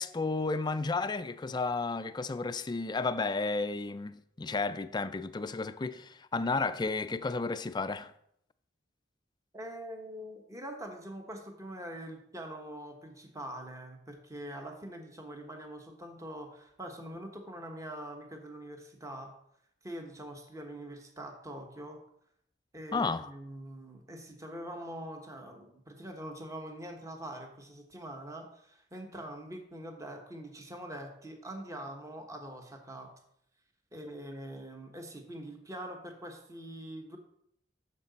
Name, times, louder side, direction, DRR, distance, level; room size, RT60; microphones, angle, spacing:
voice 1, 0.0-8.1 22.9-23.3, left 3 dB, 25° left, 0.4 m, -32 dB
voice 2, 9.5-19.3 19.8-22.0 22.7-33.1 33.9-37.2, right 1 dB, 20° right, 1.1 m, -44 dB
8.6 x 6.6 x 4.0 m
head